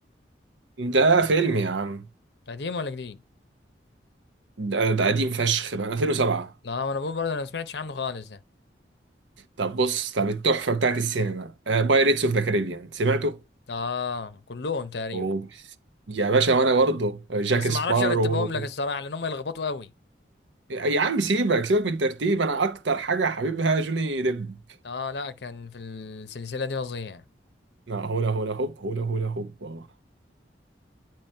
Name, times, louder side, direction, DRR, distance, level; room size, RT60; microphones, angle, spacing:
voice 1, 0.8-2.0 4.6-6.5 9.6-13.4 15.1-15.5 16.1-18.5 20.7-24.5 27.9-29.8, right 3 dB, 90° right, 0.8 m, -24 dB
voice 2, 2.5-3.2 6.6-8.4 13.7-15.3 17.5-19.9 24.8-27.2, left 4 dB, 70° left, 0.7 m, -31 dB
8.8 x 3.0 x 4.4 m
head